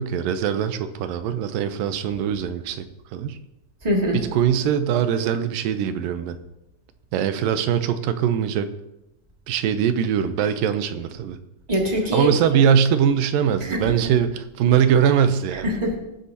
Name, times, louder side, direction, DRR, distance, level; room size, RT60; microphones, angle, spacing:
voice 1, 0.0-2.9 3.1-3.4 4.1-6.4 7.1-8.7 9.5-11.4 12.1-15.7, right 8 dB, 85° right, 10 dB, 2.4 m, -21 dB
voice 2, 3.8-4.2 11.7-12.3 13.6-14.0 15.5-16.0, equal, 15° right, -1 dB, 1.4 m, -23 dB
19.5 x 10.0 x 2.8 m, 0.91 s
omnidirectional pair, 3.9 m